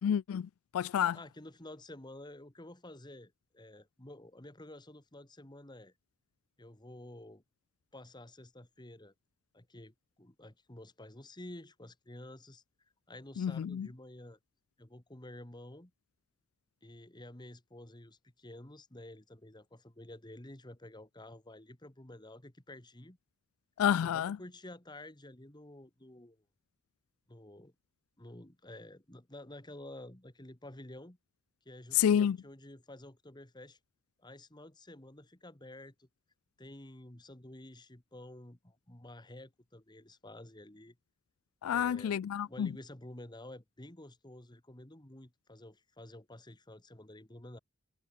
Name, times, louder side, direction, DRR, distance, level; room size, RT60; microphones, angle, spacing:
voice 1, 0.0-0.5 0.7-1.2 13.4-13.9 23.8-24.4 31.9-32.4 41.6-42.7, left 9 dB, 80° left, 0.3 m, -29 dB
voice 2, 1.1-5.9 6.6-7.4 7.9-9.1 9.5-12.6 13.1-14.4 14.8-15.9 16.8-23.2 24.0-26.4 27.3-27.7 28.2-31.2 31.7-33.8 34.2-36.1 36.6-41.0 41.7-42.1 42.5-47.6, left 1 dB, 20° left, 1.8 m, -51 dB
head